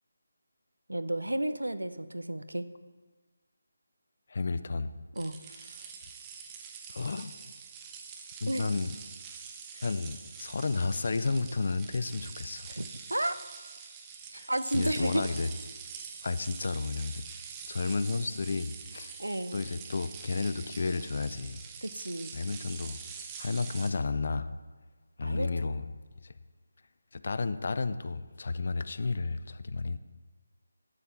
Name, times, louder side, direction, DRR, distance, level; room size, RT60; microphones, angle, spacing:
voice 1, 0.9-2.6 5.2-5.4 8.5-8.8 9.7-9.8 12.7-13.4 14.3-15.3 19.2-19.6 21.8-22.3 25.2-25.7, right 1 dB, 80° right, 11 dB, 0.6 m, -32 dB
voice 2, 4.3-4.9 5.5-5.9 6.9-7.5 8.4-9.0 9.8-12.7 14.3-15.5 16.2-17.2 17.7-19.1 19.5-21.6 22.3-23.0 23.4-24.5 25.2-25.9 26.2-26.3 27.1-30.0, left 3 dB, 45° left, 13 dB, 0.5 m, -32 dB
sound 1, 5.2-23.9, right 6 dB, 15° right, 0.7 m, -45 dB
11.5 x 7.6 x 4.6 m, 1.3 s
figure-of-eight pair, 155°, 0 cm